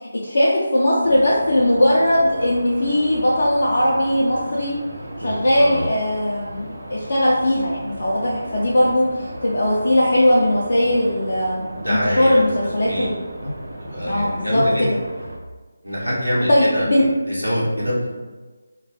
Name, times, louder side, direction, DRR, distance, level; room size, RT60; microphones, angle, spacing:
voice 1, 0.0-4.8 5.2-11.6 11.9-13.1 14.1-15.0 16.5-17.0, left 1 dB, 50° left, -7 dB, 0.5 m, -19 dB
sound 1, 1.0-15.4, right 1 dB, 45° right, 0.4 m, -36 dB
voice 2, 5.2-5.9 11.7-12.5 12.8-13.1 13.8-14.9 15.8-18.1, equal, 90° right, -7 dB, 1.0 m, -25 dB
2.3 x 2.3 x 3.4 m, 1.3 s
figure-of-eight pair, 155°, 0 cm